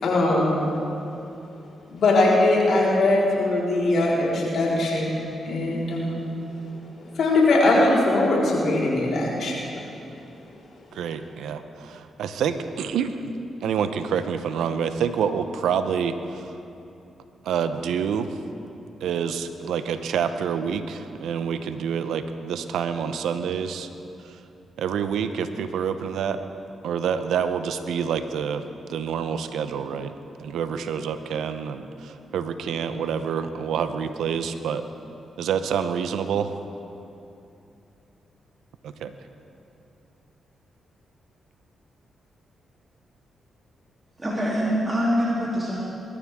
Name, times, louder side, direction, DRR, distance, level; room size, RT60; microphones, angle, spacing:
voice 1, 0.0-0.6 1.9-5.1 5.4-6.2 7.2-9.7, left 2 dB, 70° left, -5 dB, 4.3 m, -21 dB
voice 2, 10.9-13.3 13.6-16.5 17.4-18.4 19.0-23.9 24.2-24.4 24.8-26.4 26.8-28.6 28.9-30.1 30.4-34.8 35.4-36.5 39.0-39.1, right 7 dB, 80° right, 10 dB, 0.8 m, -27 dB
voice 3, 44.2-45.8, equal, 25° right, -6 dB, 3.2 m, -24 dB
22.0 x 13.5 x 3.7 m, 2.8 s
supercardioid pair, 55°, 0 cm